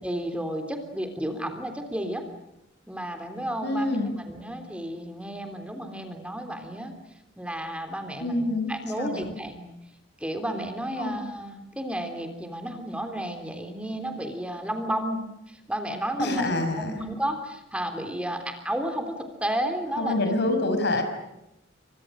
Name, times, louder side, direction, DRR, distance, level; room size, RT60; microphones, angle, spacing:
voice 1, 0.0-2.2 2.9-3.9 4.3-6.9 7.4-9.6 10.2-15.2 15.5-20.1, right 1 dB, 5° right, 6 dB, 3.5 m, -32 dB
voice 2, 3.6-4.1 8.2-9.3 11.0-11.1 16.2-17.0 20.0-21.0, left 2 dB, 60° left, 7 dB, 5.9 m, -26 dB
30.0 x 25.5 x 6.4 m, 0.87 s
head